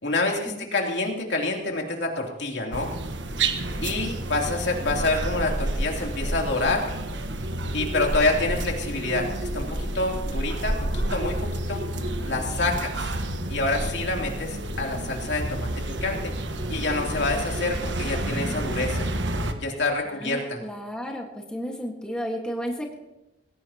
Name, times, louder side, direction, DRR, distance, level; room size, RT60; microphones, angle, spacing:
voice 1, 0.0-2.9 3.8-6.9 7.7-9.3 9.5-11.8 12.2-13.1 13.5-15.7 16.0-16.3 16.7-19.1 19.6-20.6, left 2 dB, 70° left, 0 dB, 3.1 m, -27 dB
sound 1, 2.7-19.5, right 1 dB, 80° right, 1.3 m, -29 dB
voice 2, 20.1-22.9, equal, 5° left, 0 dB, 1.6 m, -33 dB
20.5 x 17.5 x 3.0 m, 0.94 s
head